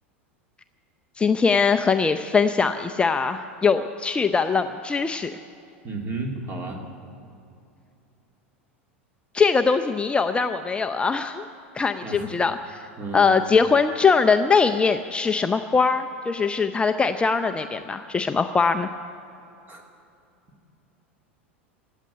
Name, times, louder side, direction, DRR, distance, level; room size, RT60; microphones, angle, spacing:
voice 1, 1.2-5.3 9.3-11.5 11.8-12.9 13.1-18.9, left 5 dB, 15° left, 7 dB, 0.6 m, -21 dB
voice 2, 5.8-6.8 12.0-12.3 13.0-13.3 19.7-19.8, right 3 dB, 30° right, 1 dB, 3.0 m, -32 dB
16.5 x 8.3 x 9.9 m, 2.7 s
figure-of-eight pair, 85°, 7 cm